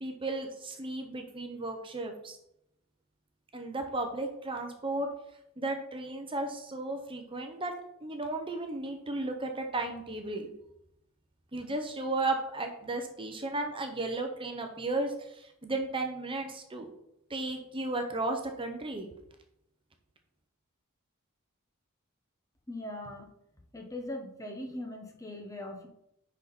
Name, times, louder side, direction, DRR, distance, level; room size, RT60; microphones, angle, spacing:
voice 1, 0.0-2.4 3.5-5.1 5.6-7.7 8.0-10.5 11.5-16.9 17.3-19.1, right 2 dB, 25° right, 4 dB, 0.9 m, -34 dB
voice 2, 22.7-23.3 23.7-25.9, left 1 dB, 15° left, 3 dB, 1.0 m, -40 dB
10.5 x 4.3 x 4.1 m, 0.80 s
head